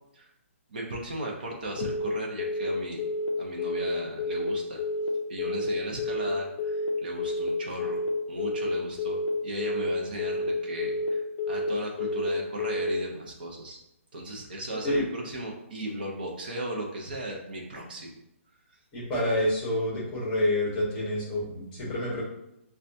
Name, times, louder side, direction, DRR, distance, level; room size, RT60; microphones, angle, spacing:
voice 1, 0.7-3.1 3.4-4.8 5.3-8.0 8.3-11.2 11.5-13.8 14.1-18.1, right 1 dB, 40° right, -1 dB, 0.7 m, -36 dB
Telephone, 1.8-2.1 2.4-2.7 3.0-3.3 3.6-3.9 4.2-4.5 4.8-5.1 5.4-5.7 6.0-6.3 6.6-6.9 7.2-7.5 7.8-8.1 8.4-8.7 9.0-9.3 9.6-9.9 10.2-10.5 10.8-11.1 11.4-11.7 12.0-12.3 12.6-12.9, left 2 dB, 30° left, 0.4 m, -30 dB
voice 2, 18.9-22.2, left 1 dB, 15° left, -6 dB, 0.8 m, -28 dB
5.5 x 2.2 x 2.6 m, 0.82 s
hypercardioid pair, 180°, 7 cm